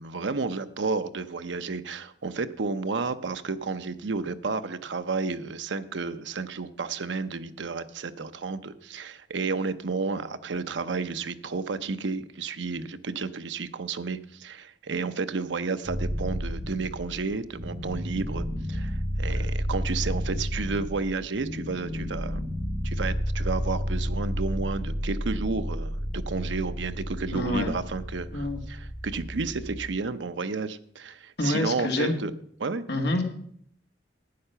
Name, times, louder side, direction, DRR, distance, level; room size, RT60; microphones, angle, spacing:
voice 1, 0.0-22.4 22.8-32.3 32.6-32.8, right 4 dB, 85° right, 10 dB, 0.7 m, -31 dB
sound 1, 15.8-29.9, equal, 5° right, 4.4 m, -31 dB
voice 2, 27.3-27.7 28.3-28.6 31.4-32.2 32.9-33.2, left 1 dB, 60° left, 3 dB, 1.9 m, -27 dB
11.5 x 8.9 x 5.7 m, 0.64 s
head